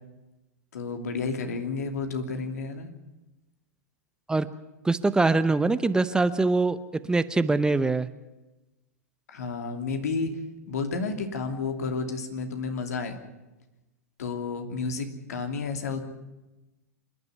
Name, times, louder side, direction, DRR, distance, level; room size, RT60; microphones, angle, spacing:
voice 1, 0.7-2.9 9.3-10.3 10.7-13.2 14.2-16.0, left 4 dB, 75° left, 6 dB, 2.9 m, -31 dB
voice 2, 4.8-6.8 7.1-8.1, right 3 dB, 10° right, 13 dB, 0.8 m, -23 dB
26.5 x 11.0 x 9.6 m, 1.0 s
hypercardioid pair, 105°, 9 cm